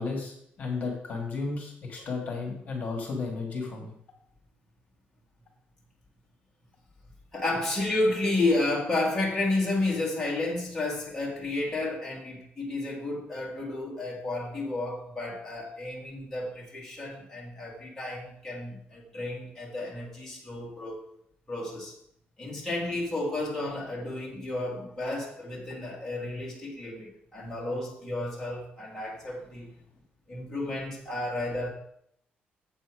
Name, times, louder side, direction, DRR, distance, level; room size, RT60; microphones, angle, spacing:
voice 1, 0.0-3.9, left 4 dB, 40° left, 1 dB, 1.9 m, -33 dB
voice 2, 7.3-21.0 21.5-21.9 22.4-29.7 30.3-31.7, left 2 dB, 10° left, -4 dB, 2.0 m, -31 dB
7.6 x 7.0 x 4.8 m, 0.70 s
cardioid pair, 170°, 4 cm